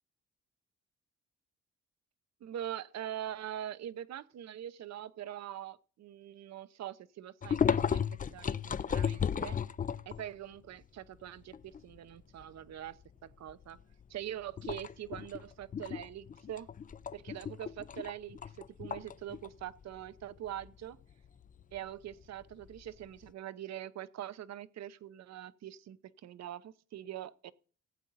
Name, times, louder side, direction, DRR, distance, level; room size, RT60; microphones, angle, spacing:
voice 1, 2.4-8.0 8.3-9.6 10.1-13.0 13.2-13.8 14.1-16.7 17.1-18.4 18.7-21.0 21.7-27.5, right 11 dB, 60° right, 0.8 m, -43 dB
sound 1, 7.4-10.3 10.8-10.9 11.3-12.4 12.9-13.1 13.5-14.0 14.5-23.3, left 7 dB, 30° left, 0.4 m, -35 dB
16.0 x 8.3 x 4.0 m
cardioid pair, 90°, 30 cm